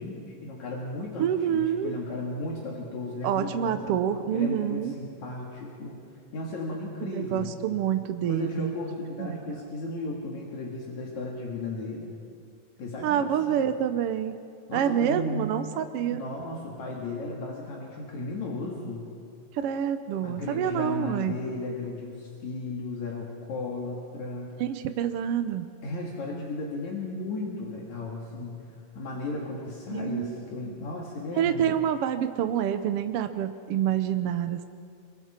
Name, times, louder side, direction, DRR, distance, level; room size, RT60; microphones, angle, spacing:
voice 1, 0.0-4.0 4.3-5.9 6.3-7.5 8.3-12.1 12.8-13.8 14.7-15.6 16.1-19.1 20.2-24.6 25.8-28.7 29.0-31.7, left 2 dB, 75° left, -3 dB, 3.6 m, -35 dB
voice 2, 1.2-1.9 3.2-4.9 7.0-8.7 9.2-9.4 13.0-14.4 14.7-16.2 19.5-21.4 24.6-25.7 29.9-30.3 30.6-30.8 31.4-34.7, right 9 dB, 70° right, 9 dB, 1.5 m, -27 dB
30.0 x 22.5 x 4.4 m, 2.4 s
omnidirectional pair, 3.3 m